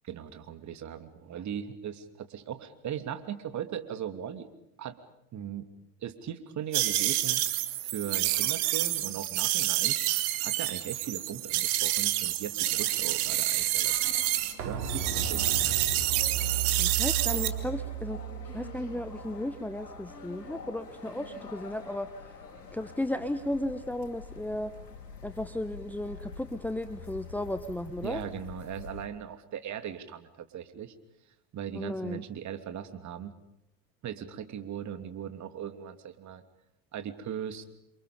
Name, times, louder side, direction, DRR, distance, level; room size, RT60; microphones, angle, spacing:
voice 1, 0.0-4.5 4.8-5.0 5.3-5.7 6.0-7.5 7.9-10.0 10.4-14.2 14.6-15.8 28.0-30.9 31.5-33.3 34.0-36.4 36.9-37.6, right 9 dB, 35° right, 9 dB, 3.0 m, -38 dB
sound 1, 6.7-14.5 14.8-17.5, right 15 dB, 55° right, 3.0 m, -28 dB
sound 2, 12.6-29.1, left 5 dB, 90° left, 4.6 m, -46 dB
sound 3, 14.6-20.2 20.5-20.6, right 8 dB, 70° right, 5.2 m, -35 dB
voice 2, 16.8-18.2 18.5-22.1 22.7-24.7 25.2-28.2 31.7-32.2, left 1 dB, 5° left, 10 dB, 1.3 m, -34 dB
29.5 x 27.0 x 5.3 m, 0.82 s
hypercardioid pair, 90°, 49 cm